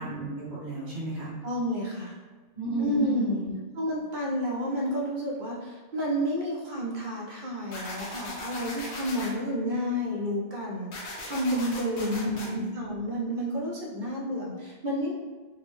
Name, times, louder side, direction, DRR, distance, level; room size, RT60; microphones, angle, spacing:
voice 1, 0.0-1.3 2.5-3.5 12.0-12.7, right 1 dB, 90° right, -7 dB, 1.6 m, -33 dB
voice 2, 1.4-2.2 2.8-3.4 3.7-15.1, equal, 55° right, -3 dB, 0.6 m, -30 dB
sound 1, 7.7-9.3 10.9-12.5, left 1 dB, 80° left, 1.0 m, -38 dB
3.6 x 2.0 x 3.0 m, 1.4 s
omnidirectional pair, 1.1 m